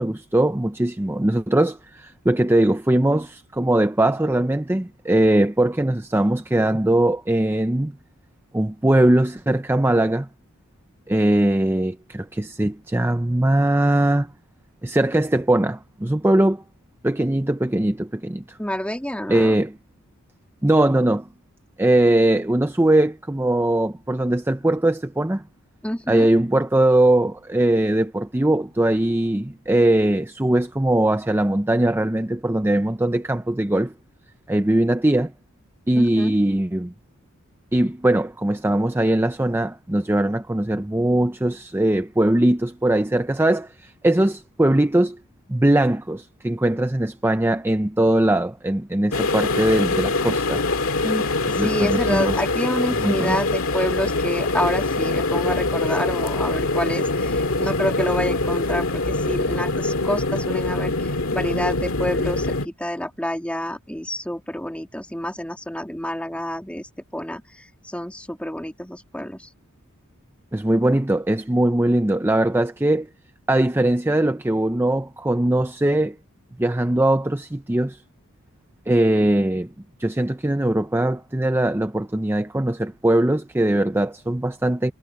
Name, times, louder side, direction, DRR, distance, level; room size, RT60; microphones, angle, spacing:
voice 1, 0.0-8.0 8.5-10.3 11.1-14.3 14.8-16.6 17.0-18.6 19.3-19.7 20.6-21.3 21.8-25.4 26.1-33.9 34.5-35.3 35.9-36.9 37.7-45.2 45.5-50.6 51.6-52.3 53.0-53.4 70.5-73.1 73.5-76.2 76.6-78.0 78.9-79.7 80.0-84.9, right 1 dB, 10° right, 0.6 m, -20 dB
voice 2, 18.6-19.6 25.8-26.3 36.0-36.3 51.0-69.5, left 1 dB, 5° left, 2.2 m, -28 dB
sound 1, 49.1-62.7, left 2 dB, 75° left, 2.0 m, -23 dB
head